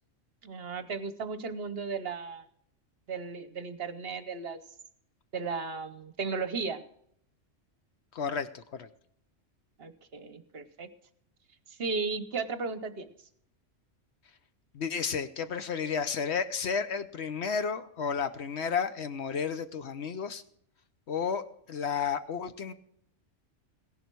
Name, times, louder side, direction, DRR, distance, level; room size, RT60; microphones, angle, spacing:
voice 1, 0.4-2.4 3.1-4.6 5.3-6.8 9.8-10.9 11.7-13.1, right 4 dB, 55° right, 11 dB, 1.0 m, -35 dB
voice 2, 8.1-8.9 14.7-20.4 21.1-22.7, left 6 dB, 60° left, 11 dB, 1.1 m, -32 dB
16.5 x 11.0 x 4.6 m, 0.68 s
omnidirectional pair, 1.3 m